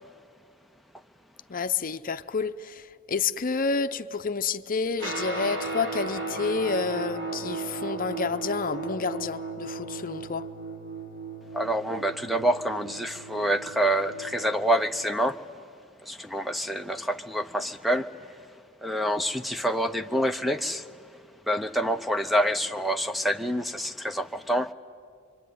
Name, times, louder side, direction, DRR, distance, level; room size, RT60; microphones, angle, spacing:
voice 1, 1.5-10.5, left 4 dB, 40° left, 0.7 m, -29 dB
Guitar, 5.0-14.6, right 3 dB, 55° right, 4.2 m, -36 dB
voice 2, 11.5-15.6 16.0-18.5 18.8-21.1 21.5-24.7, equal, ahead, 0.6 m, -27 dB
25.0 x 25.0 x 9.4 m
head